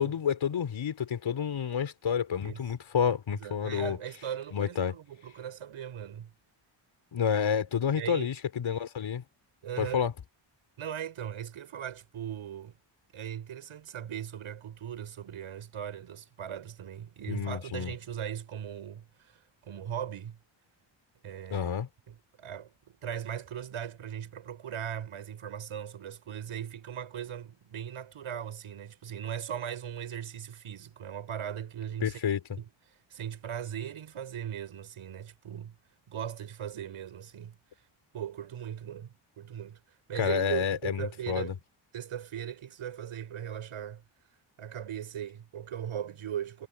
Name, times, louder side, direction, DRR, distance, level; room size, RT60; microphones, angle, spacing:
voice 1, 0.0-4.0 4.5-4.9 7.1-9.2 9.8-10.1 17.3-17.9 21.5-21.9 32.0-32.4 40.1-41.5, left 7 dB, 70° left, 4.5 m, -29 dB
voice 2, 3.3-6.3 8.0-8.3 9.6-10.0 10.8-12.8 13.1-19.3 19.6-20.4 21.2-21.7 22.1-32.2 32.6-32.7 33.1-35.7 36.1-37.5 38.1-39.8 40.1-41.6 41.9-44.0 44.6-46.7, right 9 dB, 85° right, 6.2 m, -39 dB
wide cardioid pair, 130°, 49 cm